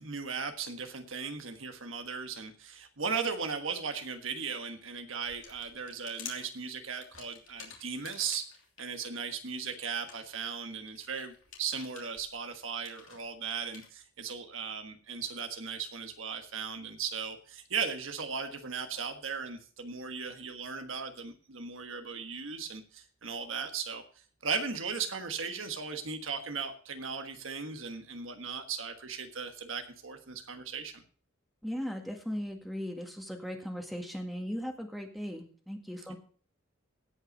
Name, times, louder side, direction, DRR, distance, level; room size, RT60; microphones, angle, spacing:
voice 1, 0.0-8.5 8.8-24.0 24.4-31.0 36.1-36.2, right 5 dB, 70° right, 6 dB, 1.4 m, -37 dB
sound 1, 5.2-8.8 9.3-13.9, left 7 dB, 70° left, 2.9 m, -50 dB
voice 2, 31.6-36.2, equal, ahead, 2 dB, 1.8 m, -38 dB
17.0 x 5.6 x 5.3 m, 0.43 s
head